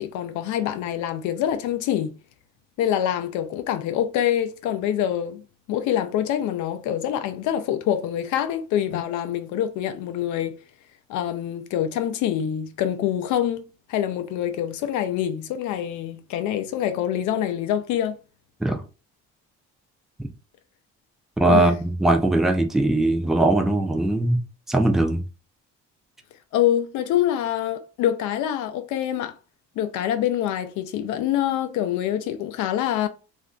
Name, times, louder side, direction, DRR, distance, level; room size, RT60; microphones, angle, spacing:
voice 1, 0.0-2.2 2.8-5.4 5.7-10.6 11.1-13.6 13.9-18.2 21.5-21.7 26.5-29.3 29.8-33.1, left 10 dB, 80° left, 0.4 m, -25 dB
voice 2, 21.4-24.4 24.7-25.2, right 2 dB, ahead, 0.3 m, -20 dB
2.5 x 2.2 x 3.6 m
cardioid pair, 135°, 30 cm